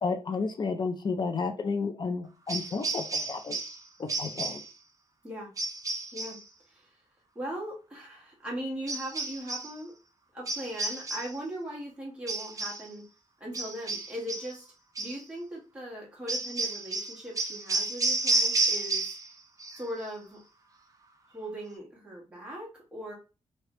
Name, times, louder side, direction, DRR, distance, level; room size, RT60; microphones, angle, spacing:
voice 1, 0.0-3.6 4.0-4.6, left 4 dB, 40° left, 6 dB, 0.4 m, -32 dB
sound 1, 2.5-3.8 4.1-4.7 5.6-6.4 8.9-9.7 10.5-11.4 12.3-12.9 13.5-14.6 15.0-15.2 16.3-19.3 19.6-20.1, right 3 dB, 30° right, 0.5 m, -31 dB
voice 2, 7.3-9.9 10.3-13.1 13.4-14.6 15.0-19.1 19.7-20.4 21.3-23.1, equal, 10° right, -4 dB, 1.3 m, -39 dB
3.2 x 2.8 x 3.0 m, 0.32 s
wide cardioid pair, 150°, 12 cm